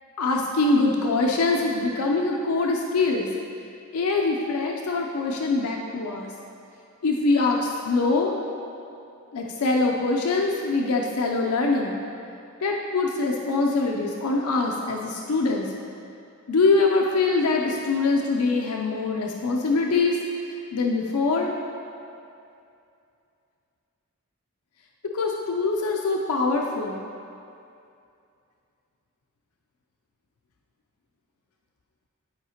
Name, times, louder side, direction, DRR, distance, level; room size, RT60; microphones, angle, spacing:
voice 1, 0.2-3.3 3.9-6.3 7.0-8.3 9.3-12.0 12.6-15.7 16.5-20.2 20.7-21.5 25.1-27.0, left 3 dB, 90° left, 0 dB, 0.5 m, -23 dB
11.0 x 4.8 x 2.8 m, 2.6 s
head